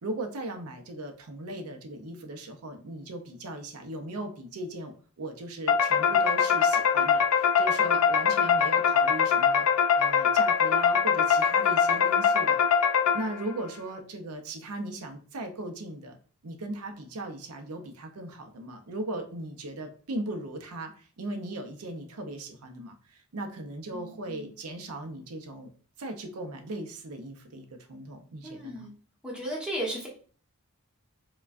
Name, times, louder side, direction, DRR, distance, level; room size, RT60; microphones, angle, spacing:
voice 1, 0.0-16.2 16.4-25.7 26.0-28.9, right 2 dB, 80° right, 5 dB, 0.6 m, -38 dB
sound 1, 5.7-13.5, left 7 dB, 75° left, 0.5 m, -23 dB
voice 2, 23.9-24.5 28.4-28.9 29.2-30.1, right 1 dB, 5° right, -4 dB, 1.1 m, -35 dB
4.5 x 2.2 x 2.4 m, 0.42 s
head